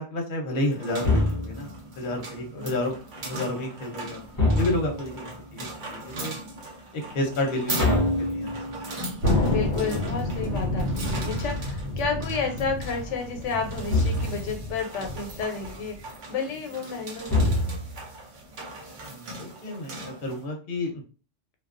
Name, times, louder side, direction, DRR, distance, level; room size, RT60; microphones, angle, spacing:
voice 1, 0.0-2.9 3.2-4.2 4.6-6.3 6.9-7.9 8.2-8.8 19.0-21.0, left 1 dB, 50° left, 1 dB, 0.8 m, -31 dB
sound 1, 0.6-20.4, right 1 dB, 50° right, 0.7 m, -39 dB
sound 2, 1.0-1.8 4.3-5.2 7.8-8.9 13.9-14.6 17.3-18.1, left 2 dB, 35° left, 0.3 m, -24 dB
Thunder, 9.2-16.1, left 1 dB, 75° right, 1.0 m, -29 dB
voice 2, 9.5-17.8, left 5 dB, 85° left, 4 dB, 0.9 m, -31 dB
2.3 x 2.2 x 2.4 m, 0.34 s
omnidirectional pair, 1.2 m